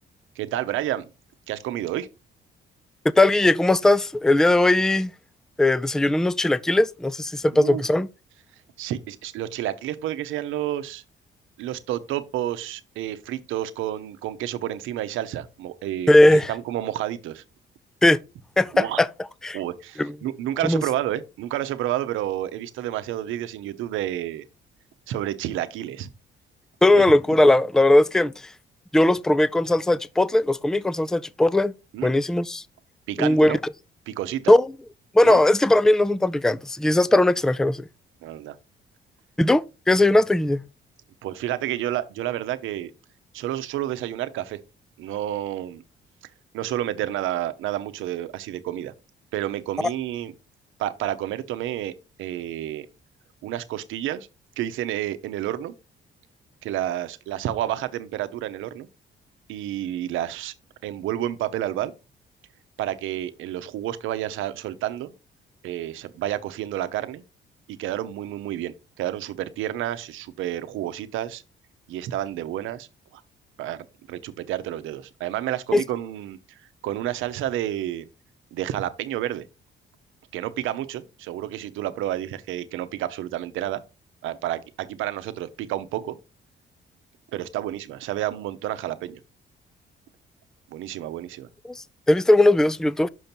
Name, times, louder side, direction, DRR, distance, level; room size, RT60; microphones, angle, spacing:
voice 1, 0.4-1.1 1.5-2.1 7.5-7.8 8.8-11.0 11.6-17.4 18.7-19.0 19.5-24.4 25.1-26.1 27.0-27.1 31.9-32.1 33.1-33.6 34.1-34.5 35.2-35.4 38.2-38.6 41.2-42.9 43.3-44.6 45.0-45.8 46.5-48.9 49.3-50.3 50.8-51.9 52.2-52.9 53.4-54.3 54.6-55.7 56.6-58.9 59.5-60.5 60.8-61.9 62.8-65.1 65.6-67.2 67.7-71.4 71.9-72.9 73.1-73.2 73.6-76.6 76.8-78.1 78.5-79.4 80.3-83.8 84.2-86.2 87.3-89.2 90.7-91.5, right 12 dB, 90° right, 0.8 m, -30 dB
voice 2, 3.2-5.1 5.6-8.1 16.1-16.5 18.0-18.2 18.6-19.1 19.4-19.6 20.0-20.1 20.6-20.8 26.8-28.3 28.9-31.7 32.0-32.6 33.2-33.6 34.5-34.7 35.1-37.8 39.4-40.6 75.7-75.8 91.7-93.1, left 1 dB, 5° left, 0.4 m, -19 dB
6.3 x 5.3 x 4.3 m
cardioid pair, 90°, 20 cm